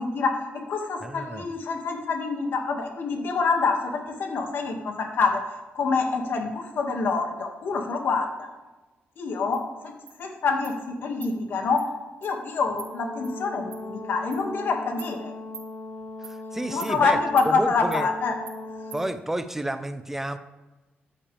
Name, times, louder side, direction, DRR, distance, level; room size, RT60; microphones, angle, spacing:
voice 1, 0.0-5.4 5.8-8.5 9.2-9.9 10.2-11.8 12.2-15.3 16.7-18.3, left 4 dB, 65° left, 3 dB, 2.0 m, -26 dB
voice 2, 1.0-1.5 16.2-17.2 17.5-18.1 18.9-20.4, right 1 dB, 10° right, 10 dB, 0.7 m, -30 dB
Insect, 9.5-9.6 10.1-10.2 10.6-10.8 11.2-11.3 11.8-11.9 12.2-12.3 12.8-12.9 13.2-13.3 13.7-13.8 14.3-14.4 15.0-15.1 15.5-15.7 16.2-16.4 16.8-16.9 17.4-17.5 17.9-18.0 18.5-18.6 18.9-19.0, right 7 dB, 70° right, 1.8 m, -42 dB
Brass instrument, 12.7-19.1, left 2 dB, 80° left, 2.1 m, -39 dB
14.0 x 10.0 x 3.4 m, 1.2 s
cardioid pair, 130°, 4 cm